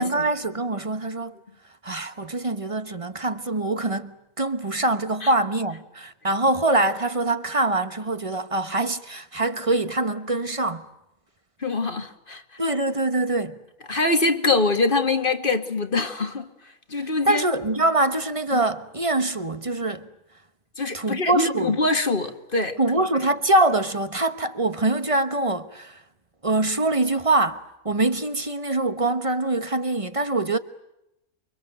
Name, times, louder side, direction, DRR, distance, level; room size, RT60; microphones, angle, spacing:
voice 1, 0.0-1.4 1.8-10.8 12.6-13.6 17.0-20.1 20.9-21.8 22.8-26.0 26.4-30.6, right 2 dB, 25° right, 1.1 m, -24 dB
voice 2, 11.6-12.4 13.9-16.5 16.9-17.4 18.5-18.6 20.8-22.8, left 3 dB, 40° left, 2.0 m, -24 dB
29.0 x 24.0 x 7.9 m
omnidirectional pair, 1.4 m